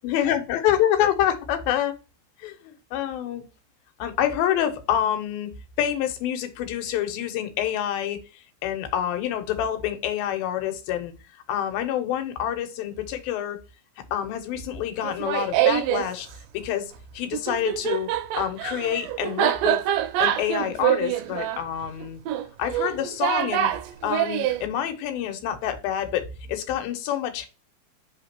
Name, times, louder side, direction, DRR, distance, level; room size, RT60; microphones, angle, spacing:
voice 1, 0.0-1.9 2.4-3.4 4.0-5.5 5.8-11.1 11.5-13.6 14.1-16.3 16.5-18.1 18.4-19.8 20.2-22.2 22.6-23.7 24.0-27.5, left 10 dB, 80° left, 7 dB, 2.6 m, -27 dB
Laughter, 15.0-16.1 17.3-24.6, right 12 dB, 80° right, 2.1 m, -25 dB
5.1 x 3.7 x 5.7 m, 0.31 s
omnidirectional pair, 4.3 m